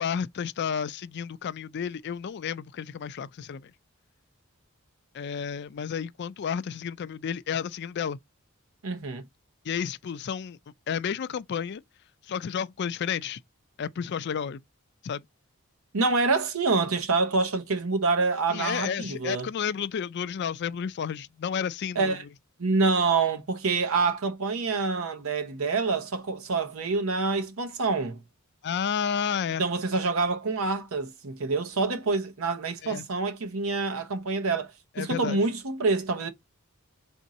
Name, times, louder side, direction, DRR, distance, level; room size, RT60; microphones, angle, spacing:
voice 1, 0.0-3.7 5.1-8.2 9.6-10.6 10.9-11.8 12.3-13.4 13.8-14.6 15.0-15.2 18.5-22.2 28.6-29.6 32.8-33.0 35.0-35.4, left 7 dB, 50° left, 0.4 m, -31 dB
voice 2, 8.8-9.2 15.9-19.5 21.9-22.2 22.6-28.2 29.6-34.7 35.0-36.3, right 3 dB, 70° right, 0.8 m, -26 dB
3.7 x 2.6 x 4.1 m
head